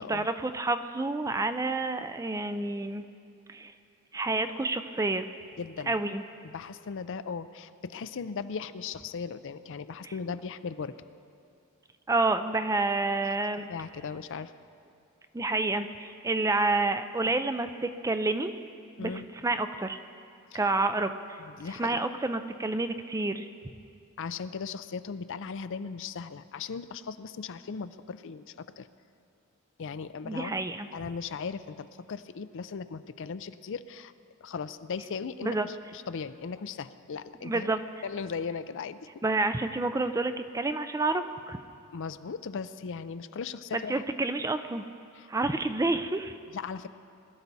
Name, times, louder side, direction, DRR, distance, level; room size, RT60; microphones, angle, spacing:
voice 1, 0.0-3.0 3.5-3.7 4.1-5.3 5.9-6.2 10.0-10.1 12.1-13.7 15.3-18.6 19.0-19.1 19.4-20.0 20.5-21.4 21.8-23.5 30.2-30.9 35.4-35.7 37.4-37.8 39.2-41.6 43.7-44.8 45.3-46.3, right 2 dB, 15° right, 9 dB, 0.4 m, -29 dB
voice 2, 5.6-6.0 6.4-10.9 13.7-14.5 19.0-19.3 20.5-20.6 21.4-22.2 24.2-28.9 29.8-30.6 30.9-34.1 34.4-37.7 38.0-39.1 41.9-44.0 45.2-45.3 46.5-46.9, left 5 dB, 60° left, 12 dB, 0.5 m, -37 dB
21.5 x 12.0 x 4.1 m, 2.4 s
head